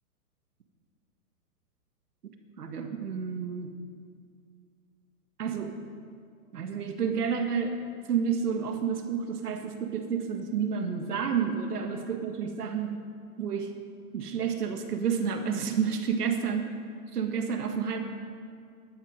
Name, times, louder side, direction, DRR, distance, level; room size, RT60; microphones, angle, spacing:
voice 1, 2.6-3.7 5.4-5.8 6.5-7.8 8.1-13.0 13.4-13.7 14.1-16.7 17.1-18.0, right 6 dB, 80° right, 5 dB, 1.7 m, -30 dB
14.0 x 12.0 x 5.2 m, 2.2 s
hypercardioid pair, 155°, 46 cm